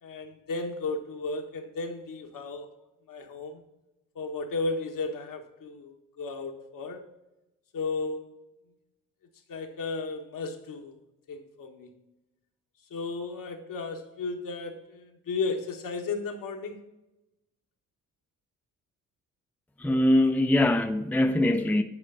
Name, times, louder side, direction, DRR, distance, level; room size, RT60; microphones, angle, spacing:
voice 1, 0.0-2.7 3.1-3.6 4.1-7.1 7.7-8.3 9.5-10.9 11.3-11.9 12.9-16.8, left 3 dB, 60° left, 1.4 m, -34 dB
voice 2, 19.8-21.8, left 1 dB, 5° left, 0.7 m, -22 dB
9.4 x 5.0 x 4.0 m
hypercardioid pair, 45°, 37 cm